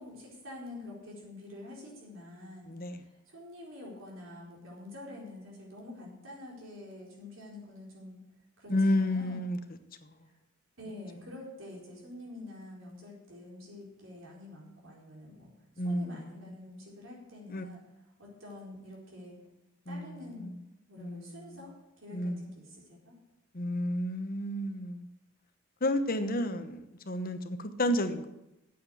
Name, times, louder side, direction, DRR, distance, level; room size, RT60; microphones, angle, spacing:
voice 1, 0.0-8.2 8.6-9.5 10.3-10.4 10.8-17.8 18.2-19.4 19.9-20.5 20.9-21.7 22.0-23.1, left 2 dB, 70° right, -3 dB, 4.4 m, -47 dB
voice 2, 2.7-3.0 8.7-9.6 10.0-10.1 15.8-16.3 17.5-17.6 19.9-20.6 21.0-21.4 22.1-22.5 23.5-25.1 25.8-28.3, left 1 dB, 45° left, 9 dB, 1.0 m, -31 dB
9.1 x 8.5 x 8.3 m, 0.91 s
head